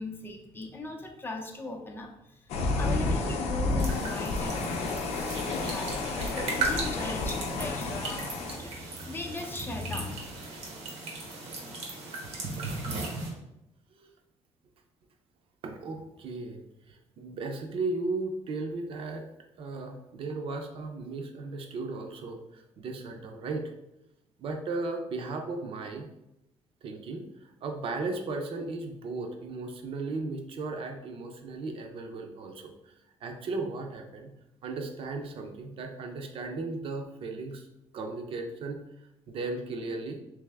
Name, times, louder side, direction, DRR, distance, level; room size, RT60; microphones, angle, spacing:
voice 1, 0.0-5.1 5.5-10.5, left 2 dB, 20° left, 2 dB, 0.5 m, -39 dB
sound 1, 2.5-8.6, left 3 dB, 75° left, 0.5 m, -30 dB
sound 2, 3.8-13.3, right 3 dB, 85° right, 1.1 m, -37 dB
voice 2, 15.6-16.6 16.9-19.3 19.6-23.7 24.4-26.1 26.8-34.3 34.6-37.7 37.9-38.8 39.3-40.2, right 3 dB, 55° right, 4 dB, 0.6 m, -36 dB
3.4 x 3.1 x 3.4 m, 0.88 s
cardioid pair, 130°, 11 cm